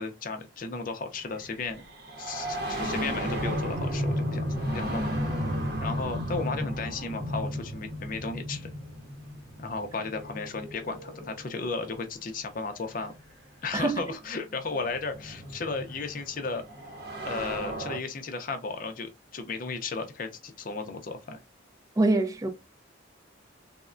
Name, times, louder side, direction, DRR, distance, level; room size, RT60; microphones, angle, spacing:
voice 1, 0.0-1.8 2.2-5.5 5.8-8.7 9.6-13.1 13.6-16.7 17.2-21.4, left 4 dB, 45° left, 0.5 m, -35 dB
sound 1, 1.2-11.9 13.1-13.2 14.2-18.0, equal, 55° right, 0.8 m, -34 dB
voice 2, 22.0-22.5, right 2 dB, 15° right, 0.4 m, -24 dB
3.5 x 2.1 x 2.4 m
head